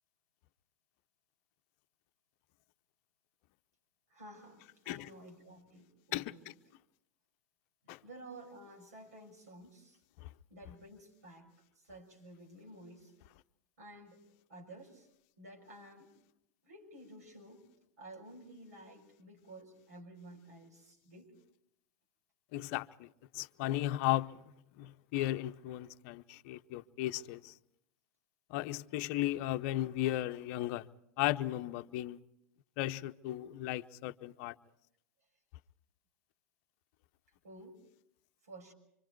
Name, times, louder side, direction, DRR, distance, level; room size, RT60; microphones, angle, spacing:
voice 1, 4.1-6.5 7.8-10.0 10.5-13.1 13.8-14.2 14.5-15.1 15.4-16.1 16.6-17.6 18.0-21.3 37.4-37.8 38.4-38.7, right 1 dB, 85° right, 6.3 m, -53 dB
voice 2, 22.5-23.1 23.3-24.4 24.8-27.5 28.5-30.9 31.2-32.2 32.8-34.5, left 15 dB, 55° left, 0.7 m, -35 dB
25.5 x 25.5 x 4.6 m
hypercardioid pair, 100°, 8 cm